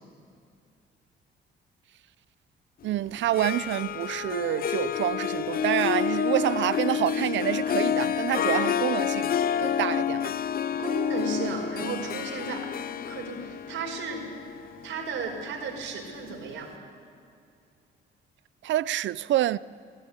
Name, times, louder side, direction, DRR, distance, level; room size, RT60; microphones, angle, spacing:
voice 1, 2.8-9.3 9.6-10.3 18.6-19.6, right 13 dB, 70° right, 0.5 m, -27 dB
Harp, 3.2-16.1, left 8 dB, 50° left, 0.6 m, -29 dB
voice 2, 10.8-12.7 13.1-14.2 14.8-16.7, right 4 dB, 85° right, 5.0 m, -34 dB
24.0 x 15.5 x 8.3 m
cardioid pair, 90°, 20 cm